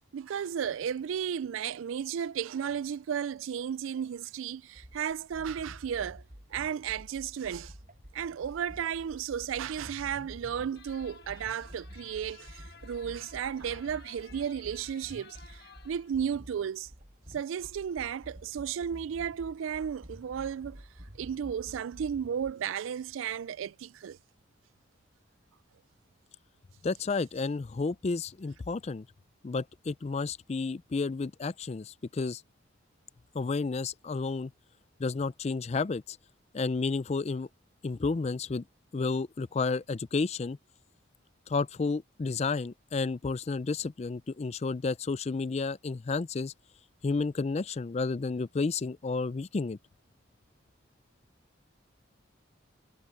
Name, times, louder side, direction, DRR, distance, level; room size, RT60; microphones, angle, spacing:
voice 1, 0.1-6.2 6.5-7.7 8.1-16.9 17.3-20.9 21.1-24.2, right 8 dB, 80° right, 0.3 m, -34 dB
sound 1, 4.7-22.5, equal, 40° right, 6.1 m, -50 dB
sound 2, 10.7-16.1, left 6 dB, 55° left, 1.5 m, -55 dB
voice 2, 26.8-29.1 29.4-32.4 33.3-34.5 35.0-36.2 36.5-37.5 37.8-38.6 38.9-40.6 41.5-46.5 47.0-49.8, left 4 dB, 30° left, 0.4 m, -31 dB
head